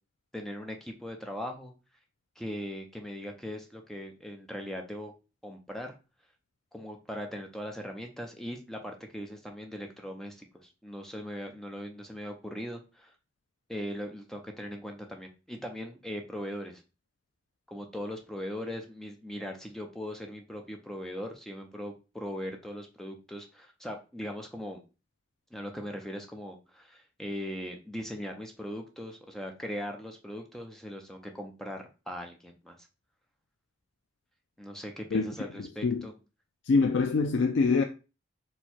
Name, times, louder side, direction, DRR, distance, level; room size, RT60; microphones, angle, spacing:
voice 1, 0.3-1.7 2.4-5.2 5.4-5.9 6.7-13.1 13.7-16.8 17.7-24.8 25.5-32.8 34.6-36.1, equal, ahead, 0.6 m, -39 dB
voice 2, 35.1-36.1 36.7-37.8, left 4 dB, 65° left, 0.4 m, -25 dB
4.5 x 2.2 x 4.2 m
head